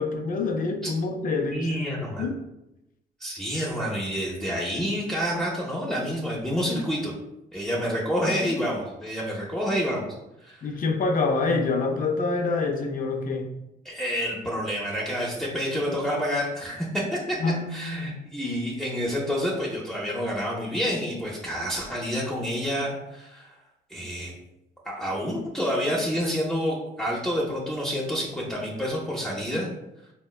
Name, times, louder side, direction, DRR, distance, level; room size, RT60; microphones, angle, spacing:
voice 1, 0.0-1.8 2.2-2.4 10.6-13.5 17.4-18.2, left 3 dB, 45° left, 5 dB, 0.4 m, -26 dB
voice 2, 1.5-2.3 3.2-7.1 7.5-10.1 10.4-10.7 13.8-17.4 17.7-23.5 23.9-24.3 24.8-29.7, equal, 5° left, -5 dB, 0.6 m, -28 dB
3.8 x 2.2 x 2.2 m, 0.88 s
cardioid pair, 80°, 19 cm